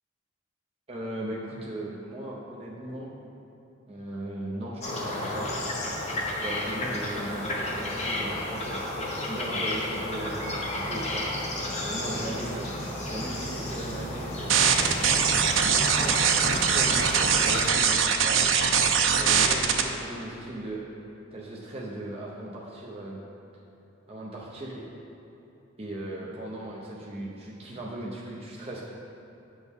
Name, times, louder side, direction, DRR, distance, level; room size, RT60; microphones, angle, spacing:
voice 1, 0.9-3.1 3.9-5.5 6.4-11.3 11.8-12.7 13.1-15.2 15.6-18.4 19.2-20.8 21.3-23.2 24.1-24.8 25.8-28.8, right 1 dB, 30° right, -5 dB, 0.7 m, -37 dB
sound 1, 4.8-17.7, left 1 dB, 35° left, 1.1 m, -32 dB
sound 2, 14.5-19.8, right 6 dB, 90° right, 0.5 m, -22 dB
8.5 x 6.2 x 3.6 m, 3.0 s
head